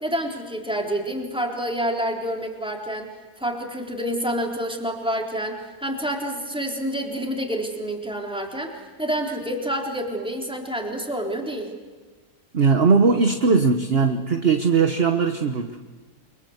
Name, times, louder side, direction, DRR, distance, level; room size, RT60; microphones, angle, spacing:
voice 1, 0.0-3.1 3.4-11.7, equal, 5° right, 1 dB, 3.6 m, -28 dB
voice 2, 12.5-15.8, right 5 dB, 40° right, 6 dB, 1.3 m, -19 dB
29.5 x 23.5 x 8.1 m, 1.4 s
omnidirectional pair, 1.7 m